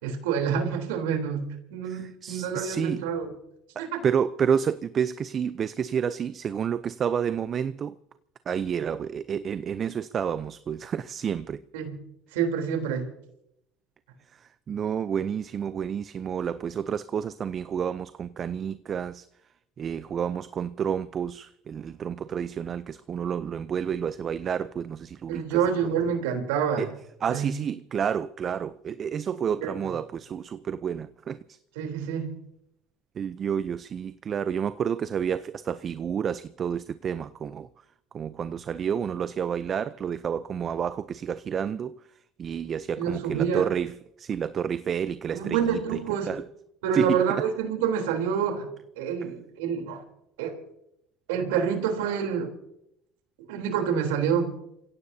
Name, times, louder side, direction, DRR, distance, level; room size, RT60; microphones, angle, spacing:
voice 1, 0.0-3.3 3.8-4.0 11.7-12.0 12.3-13.1 25.3-26.9 27.3-27.5 29.6-29.7 31.8-32.3 43.0-43.7 45.3-46.3 46.8-48.7 49.0-50.0 50.4-50.6 51.3-52.5 53.5-54.6, right 7 dB, 90° right, 3.6 m, -27 dB
voice 2, 1.9-3.0 3.8-8.0 8.5-11.6 14.4-19.3 19.8-25.9 26.8-26.9 27.2-31.6 33.2-37.7 38.1-42.0 42.4-46.0 46.3-46.4 46.9-47.4, right 7 dB, 45° right, 0.6 m, -30 dB
28.5 x 16.5 x 2.8 m
supercardioid pair, 85°, 0 cm